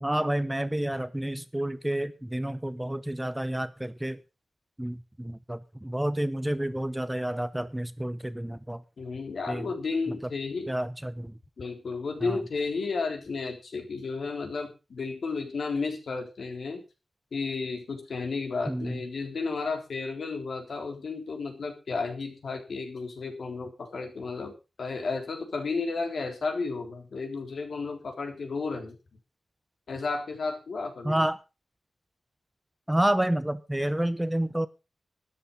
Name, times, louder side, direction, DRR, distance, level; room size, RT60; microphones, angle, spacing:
voice 1, 0.0-4.2 4.8-8.8 9.5-9.7 10.7-11.3 12.2-12.4 18.7-19.0 31.0-31.4 32.9-34.7, right 1 dB, 10° right, 14 dB, 0.8 m, -29 dB
voice 2, 9.0-10.7 11.6-16.8 17.3-24.5 24.8-29.0 29.9-31.2, left 4 dB, 70° left, 5 dB, 3.7 m, -33 dB
13.0 x 10.5 x 5.5 m, 0.30 s
wide cardioid pair, 145°, 0 cm